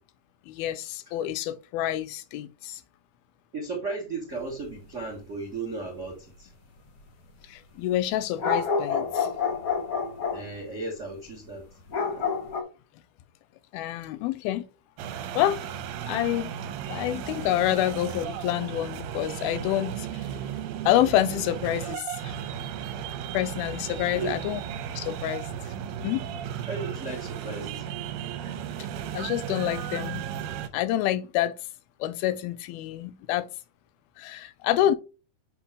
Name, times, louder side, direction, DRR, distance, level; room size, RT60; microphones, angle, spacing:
voice 1, 0.5-2.8 7.5-9.3 13.7-14.7 15.4-15.7 16.0-16.5 16.9-20.2 20.9-22.3 23.3-24.6 25.0-25.5 26.0-26.3 29.1-30.3 30.7-31.6 32.0-33.5 34.2-35.0, left 13 dB, 85° left, 2.5 m, -27 dB
voice 2, 3.5-6.5 10.3-11.6 12.2-12.3 24.1-24.3 26.7-27.9 28.4-28.6, right 3 dB, 55° right, 0.7 m, -35 dB
sound 1, 8.4-10.5 11.9-12.6, left 5 dB, 65° left, 1.3 m, -27 dB
sound 2, 15.0-30.7, right 9 dB, 80° right, 2.4 m, -35 dB
8.0 x 3.0 x 4.9 m
omnidirectional pair, 4.3 m